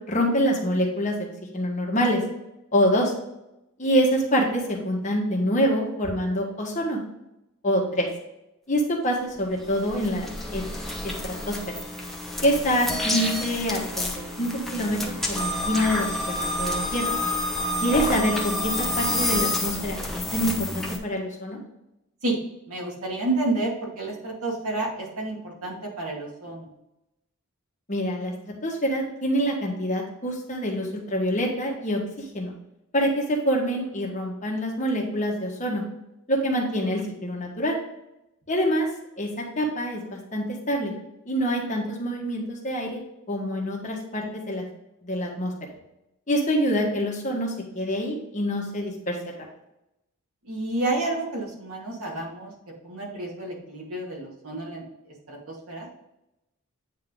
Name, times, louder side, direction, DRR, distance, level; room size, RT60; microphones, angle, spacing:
voice 1, 0.1-1.3 1.5-2.2 2.7-3.1 3.8-7.0 7.6-8.1 8.7-10.2 10.5-10.6 11.0-11.6 12.4-17.1 17.8-20.0 20.3-21.6 27.9-32.5 32.9-35.8 36.3-37.7 38.5-38.9 39.2-40.9 41.2-43.0 43.3-44.6 45.0-45.5 46.3-49.2, equal, 35° left, -1 dB, 1.5 m, -26 dB
sound 1, 9.4-21.0, left 1 dB, ahead, 0.9 m, -29 dB
voice 2, 22.7-26.7 50.4-52.5 52.8-54.8 55.3-55.9, right 2 dB, 80° right, -2 dB, 2.2 m, -30 dB
8.9 x 3.8 x 3.8 m, 0.89 s
head